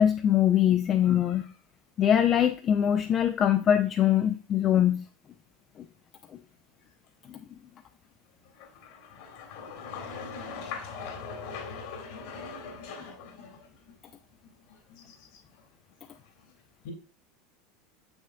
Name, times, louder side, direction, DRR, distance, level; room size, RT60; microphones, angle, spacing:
voice 1, 0.0-1.5 2.0-5.0 7.3-7.4, left 10 dB, 40° left, 7 dB, 0.4 m, -23 dB
voice 2, 9.5-13.1 13.4-13.5 16.9-17.0, left 5 dB, 65° left, 3 dB, 1.8 m, -39 dB
7.3 x 6.1 x 2.3 m, 0.38 s
hypercardioid pair, 85°, 0 cm